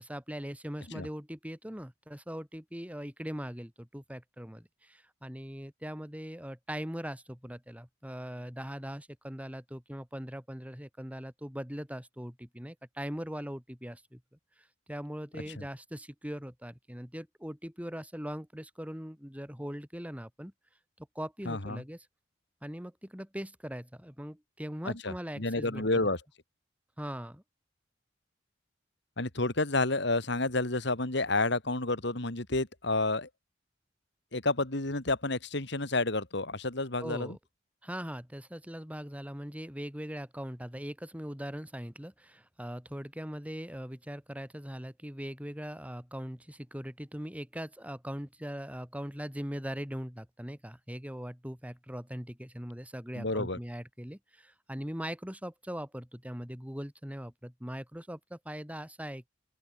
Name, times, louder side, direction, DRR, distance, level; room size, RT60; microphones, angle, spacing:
voice 1, 0.0-14.2 14.9-20.5 21.1-22.0 22.6-26.1 27.0-27.4 37.0-37.4 37.8-59.3, equal, 5° right, 4.7 m, -40 dB
voice 2, 21.5-21.8 24.8-26.2 29.2-33.3 34.3-37.4 53.2-53.6, left 2 dB, 65° left, 2.9 m, -30 dB
open air
head